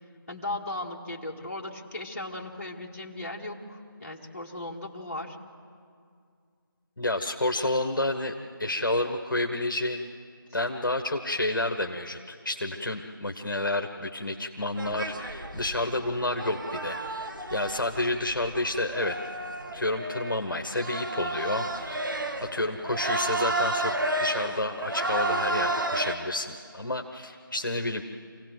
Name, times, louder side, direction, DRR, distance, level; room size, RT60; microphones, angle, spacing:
voice 1, 0.3-5.4, left 2 dB, 40° left, -1 dB, 1.9 m, -37 dB
voice 2, 7.0-10.1 10.5-19.2 19.7-22.0 22.4-23.9 24.2-28.0, left 1 dB, 60° left, 4 dB, 1.3 m, -30 dB
sound 1, 14.8-26.2, right 2 dB, 60° right, 1.8 m, -32 dB
26.0 x 17.0 x 7.8 m, 2.2 s
figure-of-eight pair, 165°, 12 cm